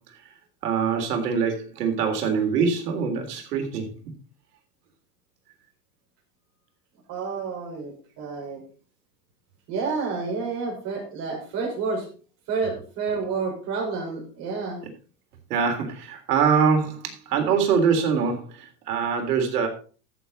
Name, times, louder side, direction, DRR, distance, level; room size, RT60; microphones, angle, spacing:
voice 1, 0.6-3.9 15.5-19.7, right 6 dB, 75° right, 4 dB, 3.5 m, -24 dB
voice 2, 7.1-8.6 9.7-12.1 12.5-14.8, right 4 dB, 35° right, 0 dB, 5.3 m, -29 dB
14.0 x 7.0 x 4.1 m, 0.39 s
supercardioid pair, 155°, 47 cm